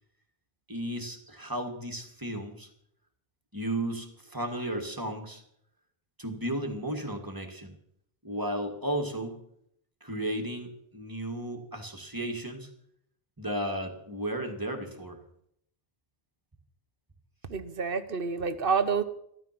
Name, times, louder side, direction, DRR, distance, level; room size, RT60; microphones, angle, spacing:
voice 1, 0.7-2.7 3.5-5.4 6.2-7.7 8.2-9.4 10.0-12.7 13.4-15.2, right 1 dB, 20° right, 3 dB, 2.2 m, -34 dB
voice 2, 17.5-19.0, right 5 dB, 60° right, 12 dB, 1.2 m, -28 dB
15.0 x 13.0 x 6.0 m, 0.72 s
omnidirectional pair, 1.0 m